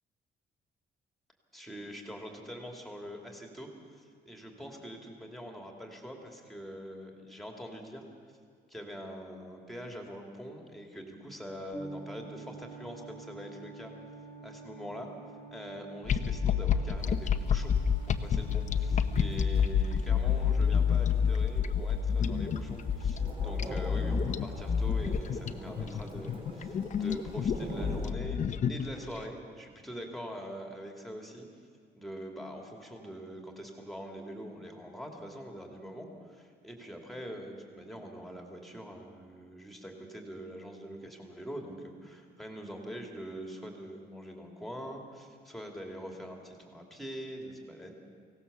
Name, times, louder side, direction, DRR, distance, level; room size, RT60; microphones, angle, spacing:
voice 1, 1.5-3.7 4.3-8.0 8.7-13.9 14.4-15.1 15.5-17.7 18.1-28.4 28.7-31.5 32.0-47.9, equal, ahead, 1 dB, 2.6 m, -43 dB
sound 1, 11.7-25.9, right 3 dB, 25° left, 1.8 m, -50 dB
sound 2, 16.1-29.2, left 7 dB, 40° left, 0.8 m, -29 dB
Thunder / Rain, 17.0-28.1, right 2 dB, 30° right, 2.3 m, -45 dB
24.0 x 17.5 x 7.0 m, 2.1 s
cardioid pair, 165°, 18 cm